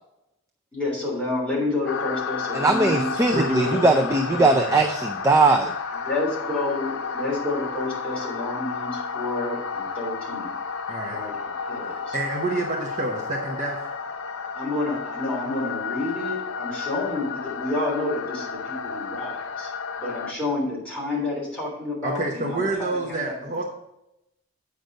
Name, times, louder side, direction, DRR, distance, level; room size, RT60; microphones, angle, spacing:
voice 1, 0.7-3.1 3.6-3.9 6.0-10.5 11.1-11.3 11.7-12.1 14.5-19.7 20.0-23.3, left 2 dB, 5° left, -6 dB, 3.3 m, -29 dB
sound 1, 1.8-20.3, left 5 dB, 75° left, 0.7 m, -32 dB
voice 2, 2.5-5.7, right 3 dB, 15° right, 4 dB, 0.4 m, -20 dB
voice 3, 3.3-3.9 4.4-4.8 10.9-11.2 12.1-13.8 22.0-23.6, right 2 dB, 35° right, -1 dB, 1.0 m, -28 dB
8.0 x 5.2 x 5.1 m, 0.87 s
head